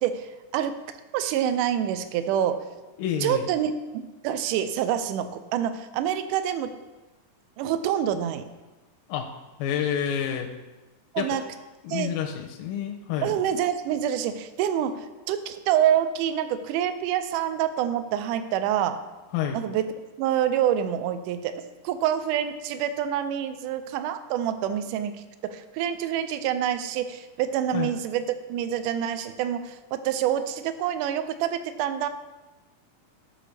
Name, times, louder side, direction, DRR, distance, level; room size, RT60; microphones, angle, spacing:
voice 1, 0.0-0.8 1.1-2.6 3.2-3.7 4.2-6.7 7.6-8.5 11.1-11.4 11.9-12.1 13.2-19.0 19.5-19.9 20.2-21.6 21.8-25.1 25.4-32.1, right 10 dB, 80° right, 10 dB, 1.9 m, -26 dB
voice 2, 3.0-3.5 9.1-9.3 9.6-10.5 11.2-11.4 11.8-13.3 19.3-19.6 27.7-27.9, left 8 dB, 85° left, 2 dB, 2.3 m, -28 dB
12.5 x 6.5 x 3.3 m, 1.1 s
omnidirectional pair, 4.1 m